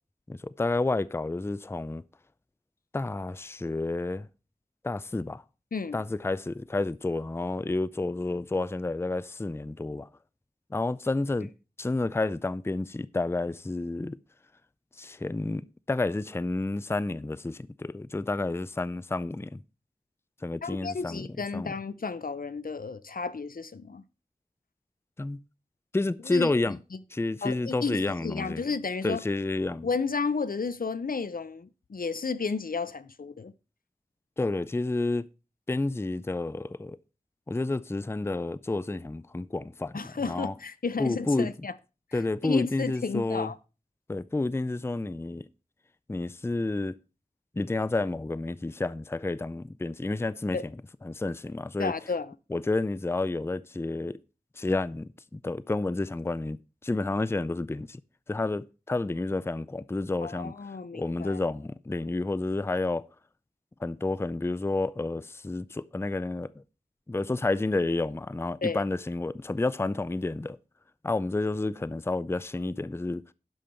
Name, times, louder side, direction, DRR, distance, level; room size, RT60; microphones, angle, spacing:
voice 1, 0.3-2.0 2.9-4.3 4.8-5.4 5.9-10.1 10.7-11.5 11.8-14.2 15.0-19.6 20.4-21.3 21.5-21.7 25.2-25.4 25.9-26.8 27.1-28.6 29.0-29.9 34.4-35.3 35.7-37.0 37.5-39.9 40.3-40.5 41.0-41.5 42.1-43.5 44.1-45.5 46.1-47.0 47.6-50.6 51.0-51.9 52.5-54.2 54.6-58.0 58.3-60.5 60.9-63.0 63.8-66.6 67.1-70.6 71.0-73.2, left 2 dB, 15° left, 0.4 m, -30 dB
voice 2, 20.6-24.0 26.2-26.5 27.4-29.2 29.8-33.5 39.9-41.7 42.4-43.6 50.5-50.6 51.8-52.3 60.2-61.4 68.6-68.8, left 4 dB, 80° left, 0.5 m, -32 dB
11.5 x 5.4 x 4.4 m
wide cardioid pair, 45°, 14 cm